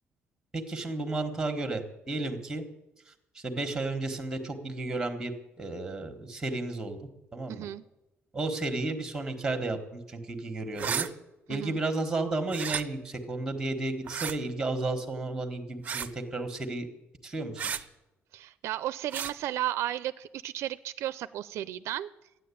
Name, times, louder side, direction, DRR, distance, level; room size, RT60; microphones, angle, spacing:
voice 1, 0.5-2.6 3.1-7.0 7.3-7.7 8.3-11.1 11.5-16.9 17.2-17.8, right 2 dB, 10° right, 1.4 m, -33 dB
voice 2, 7.5-7.8 11.5-11.8 18.3-22.1, right 13 dB, 70° right, 0.4 m, -34 dB
sound 1, 10.7-11.1 12.5-12.8 14.1-14.4 15.8-16.1 17.6-17.8 19.1-19.3, right 7 dB, 30° right, 0.6 m, -32 dB
13.5 x 9.8 x 8.5 m
cardioid pair, 175°, 5 cm